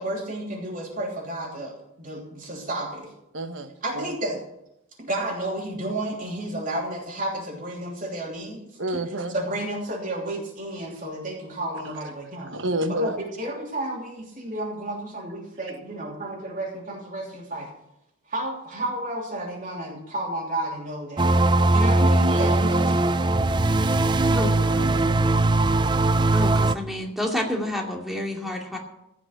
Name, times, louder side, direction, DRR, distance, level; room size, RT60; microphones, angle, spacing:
voice 1, 0.0-3.1 3.8-4.4 5.0-8.6 9.3-12.5 12.9-17.7 18.3-21.3 21.7-23.1, right 1 dB, 40° right, -2 dB, 3.1 m, -31 dB
voice 2, 3.3-4.1 8.8-9.3 12.5-13.2 22.3-23.0 24.5-25.2, right 1 dB, 70° right, 8 dB, 1.3 m, -30 dB
sound 1, 21.2-26.7, right 2 dB, 20° right, 0.5 m, -20 dB
voice 3, 26.3-28.8, left 1 dB, ahead, 0 dB, 2.4 m, -29 dB
16.0 x 6.0 x 10.0 m, 0.84 s
head